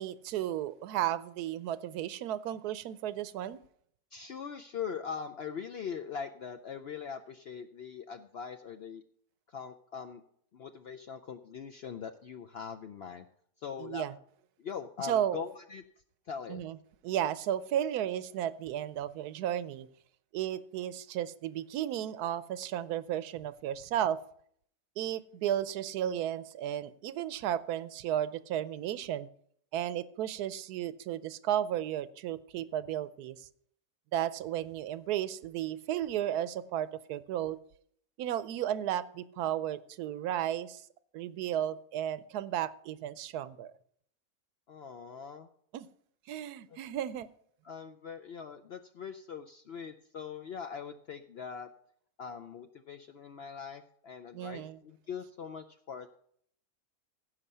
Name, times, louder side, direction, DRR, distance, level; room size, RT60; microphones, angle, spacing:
voice 1, 0.0-3.6 13.8-14.1 15.0-15.4 16.5-16.8 17.0-19.9 20.3-24.2 25.0-29.3 29.7-33.5 34.1-37.6 38.2-40.8 41.1-43.7 45.7-45.9 46.3-47.3 54.3-54.8, right 11 dB, 85° right, 16 dB, 1.2 m, -34 dB
voice 2, 4.1-9.0 9.5-10.2 10.5-13.2 13.6-14.1 14.6-15.8 16.3-16.6 44.7-45.5 46.7-46.8 47.6-51.7 52.2-56.1, left 7 dB, 70° left, 8 dB, 0.6 m, -42 dB
16.0 x 5.7 x 5.5 m, 0.66 s
omnidirectional pair, 1.6 m